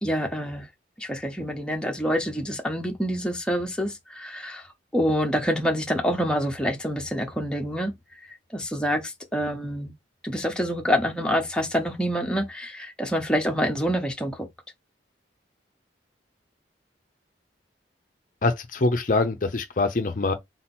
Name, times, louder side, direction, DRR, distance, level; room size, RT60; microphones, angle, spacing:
voice 1, 0.0-0.7 1.0-4.7 4.9-7.9 8.2-9.9 10.2-14.5, equal, 5° left, 0.8 m, -27 dB
voice 2, 18.4-20.3, left 3 dB, 45° left, 0.5 m, -24 dB
3.8 x 2.9 x 4.2 m
head